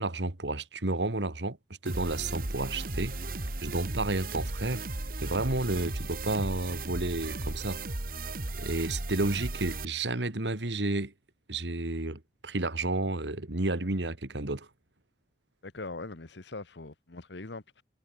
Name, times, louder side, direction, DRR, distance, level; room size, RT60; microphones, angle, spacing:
voice 1, 0.0-1.6 1.8-3.2 3.6-4.8 5.2-7.8 8.6-11.1 11.5-14.7, right 2 dB, 90° right, 2.0 m, -31 dB
sound 1, 1.9-9.9, right 2 dB, 55° right, 2.2 m, -36 dB
voice 2, 15.6-17.8, left 3 dB, 90° left, 1.4 m, -41 dB
head